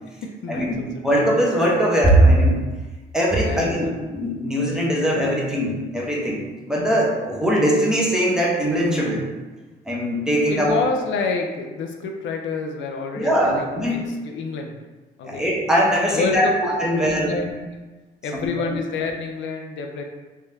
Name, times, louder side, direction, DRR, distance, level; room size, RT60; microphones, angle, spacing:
voice 1, 0.4-0.9 3.4-4.0 10.5-14.8 15.2-15.4 16.1-16.5 16.9-17.7 18.2-20.0, left 4 dB, 75° left, 3 dB, 0.5 m, -28 dB
voice 2, 1.0-2.6 3.1-9.3 9.9-10.7 13.2-14.1 15.2-17.4 18.4-18.8, right 1 dB, 5° right, -4 dB, 0.9 m, -20 dB
3.4 x 2.7 x 3.4 m, 1.2 s
cardioid pair, 90°, 20 cm